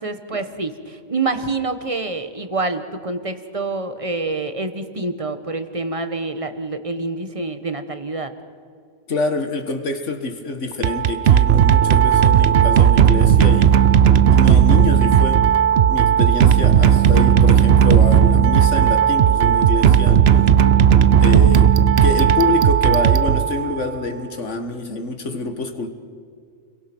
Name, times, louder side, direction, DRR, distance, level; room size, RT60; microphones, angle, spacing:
voice 1, 0.0-8.3 20.3-20.7, right 3 dB, 25° right, 1.3 m, -27 dB
voice 2, 9.1-13.8 14.3-15.4 15.9-20.3 21.2-21.7 22.0-25.9, left 3 dB, 60° left, 2.0 m, -26 dB
sound 1, 10.7-23.9, right 9 dB, 55° right, 0.9 m, -14 dB
29.5 x 22.5 x 6.2 m
omnidirectional pair, 1.4 m